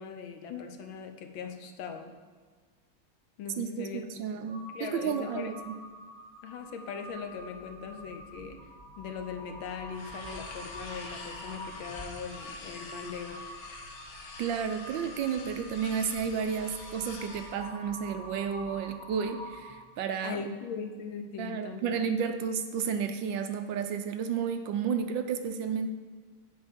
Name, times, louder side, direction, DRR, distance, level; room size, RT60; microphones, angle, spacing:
voice 1, 0.0-2.1 3.4-4.1 4.3-5.5 6.4-8.7 9.0-13.4 20.2-22.1, left 6 dB, 75° left, 6 dB, 1.5 m, -40 dB
voice 2, 3.6-5.7 14.4-20.5 21.4-25.9, right 7 dB, 75° right, 7 dB, 1.2 m, -32 dB
Crow, 4.5-20.0, equal, 10° right, 2.4 m, -46 dB
sound 1, 9.9-17.6, left 3 dB, 60° left, 1.5 m, -46 dB
9.6 x 3.8 x 7.2 m, 1.5 s
omnidirectional pair, 2.2 m